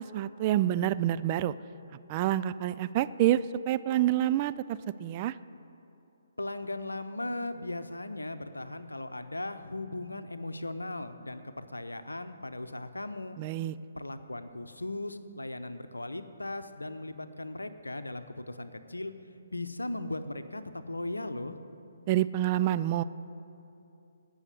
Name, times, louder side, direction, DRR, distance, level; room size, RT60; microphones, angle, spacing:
voice 1, 0.0-1.5 2.1-3.4 3.7-5.3 13.4-13.7 22.1-23.0, right 13 dB, 30° right, 14 dB, 0.4 m, -27 dB
voice 2, 6.4-13.4 13.9-19.1 19.5-21.6, left 2 dB, 85° left, 10 dB, 0.8 m, -38 dB
17.0 x 6.4 x 8.3 m, 2.8 s
figure-of-eight pair, 135°, 0 cm